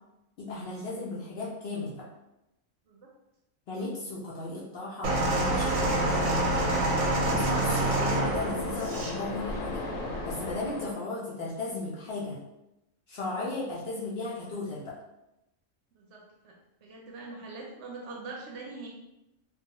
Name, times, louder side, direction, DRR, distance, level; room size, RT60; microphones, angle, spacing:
voice 1, 0.4-2.1 3.7-6.8 7.2-9.9 10.2-12.4 13.1-14.9, left 2 dB, 65° left, -5 dB, 0.7 m, -36 dB
sound 1, 5.0-9.2 10.0-10.2, right 2 dB, 90° right, 1.0 m, -27 dB
Waves surf, 5.7-10.9, left 2 dB, 85° left, 1.1 m, -34 dB
voice 2, 15.9-16.5 16.8-18.9, right 3 dB, 65° right, -2 dB, 0.8 m, -43 dB
2.3 x 2.3 x 2.8 m, 0.90 s
omnidirectional pair, 1.4 m